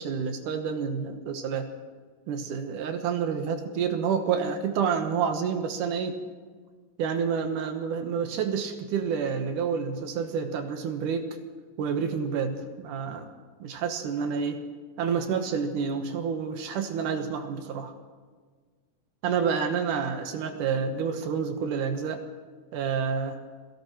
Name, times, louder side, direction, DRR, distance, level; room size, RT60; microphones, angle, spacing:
voice 1, 0.0-1.7 2.3-6.2 7.0-11.4 11.8-13.3 13.6-14.6 15.0-17.9 19.2-22.2 22.7-23.4, right 6 dB, 80° right, 6 dB, 2.7 m, -29 dB
27.5 x 17.0 x 3.1 m, 1.5 s
omnidirectional pair, 3.6 m